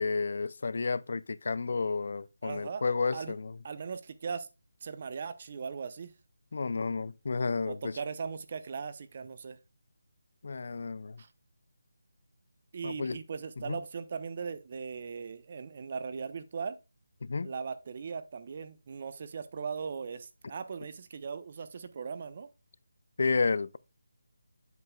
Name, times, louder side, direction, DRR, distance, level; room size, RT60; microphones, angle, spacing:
voice 1, 0.0-3.6 6.5-8.0 10.4-11.2 12.8-13.2 13.7-13.8 17.2-17.5 23.2-23.8, left 4 dB, 55° left, 0.4 m, -31 dB
voice 2, 2.4-2.8 3.1-3.3 3.6-4.5 4.8-6.1 7.7-9.6 11.2-11.3 12.7-16.8 17.4-22.5, right 5 dB, 40° right, 0.8 m, -39 dB
8.1 x 7.0 x 2.3 m
figure-of-eight pair, 165°, 0 cm